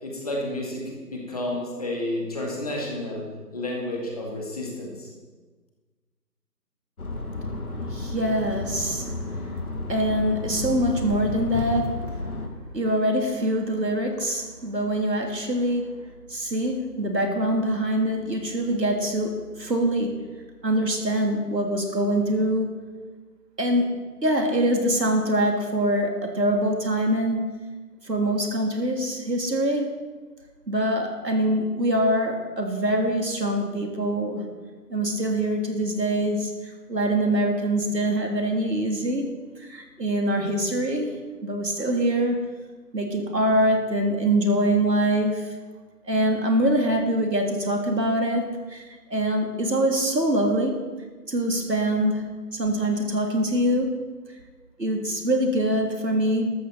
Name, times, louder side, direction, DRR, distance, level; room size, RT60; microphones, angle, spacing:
voice 1, 0.0-3.3 3.5-5.1, left 1 dB, 25° left, -2 dB, 2.0 m, -31 dB
sound 1, 7.0-12.5, left 2 dB, 60° left, 2.1 m, -32 dB
voice 2, 7.9-9.1 9.9-12.1 12.7-16.0 16.3-20.2 20.6-22.8 23.6-27.4 28.0-30.0 30.7-34.4 34.9-41.1 41.4-42.4 42.9-45.5 46.1-50.9 51.3-54.0 54.8-56.5, right 1 dB, 80° right, 2 dB, 3.3 m, -24 dB
13.5 x 13.0 x 4.3 m, 1.4 s
figure-of-eight pair, 165°, 49 cm